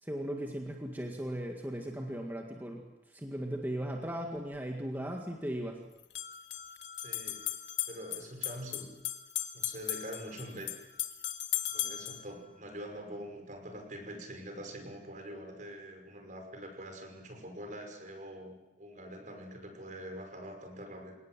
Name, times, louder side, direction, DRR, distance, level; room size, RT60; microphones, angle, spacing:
voice 1, 0.0-2.8 3.1-5.8, right 1 dB, 10° right, 1 dB, 1.9 m, -37 dB
sound 1, 4.4-4.5 6.0-12.2, left 12 dB, 75° left, 1.8 m, -37 dB
voice 2, 7.0-7.4 7.9-8.9 9.5-10.8 11.7-21.1, equal, 45° right, 4 dB, 5.7 m, -44 dB
28.5 x 19.0 x 7.6 m, 1.0 s
head